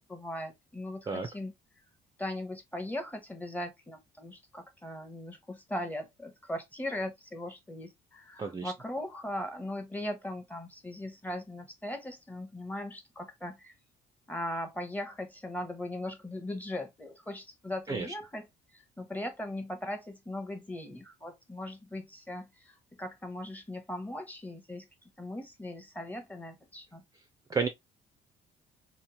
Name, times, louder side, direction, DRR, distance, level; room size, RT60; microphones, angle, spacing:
voice 1, 0.1-1.5 2.2-13.7 14.3-18.5 18.7-24.9 25.2-27.0, left 1 dB, 10° left, 0.7 m, -39 dB
voice 2, 8.4-8.7 17.9-18.1 27.5-27.7, right 4 dB, 20° right, 0.4 m, -31 dB
3.0 x 2.0 x 2.6 m
cardioid pair, 110°, 17 cm